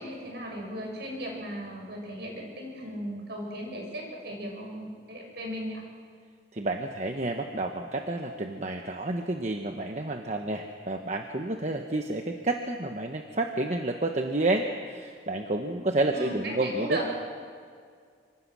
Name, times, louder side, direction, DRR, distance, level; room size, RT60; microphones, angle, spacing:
voice 1, 0.0-5.8 16.1-17.1, right 1 dB, 65° right, 0 dB, 7.2 m, -36 dB
voice 2, 6.5-17.1, right 2 dB, 40° right, 4 dB, 1.1 m, -30 dB
25.5 x 25.5 x 6.2 m, 2.1 s
head